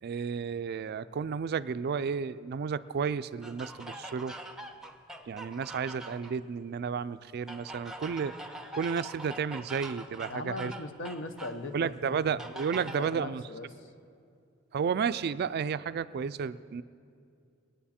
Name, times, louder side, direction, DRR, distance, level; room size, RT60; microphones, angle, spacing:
voice 1, 0.0-4.3 5.3-8.3 8.7-10.7 11.7-13.4 14.7-16.8, right 6 dB, 50° right, 15 dB, 0.3 m, -32 dB
sound 1, 3.4-6.4 7.5-11.6 12.4-13.2, right 1 dB, 5° right, 0.6 m, -44 dB
voice 2, 10.3-12.3 12.9-13.9, left 2 dB, 65° left, 8 dB, 0.9 m, -39 dB
22.0 x 9.1 x 4.3 m, 2.4 s
head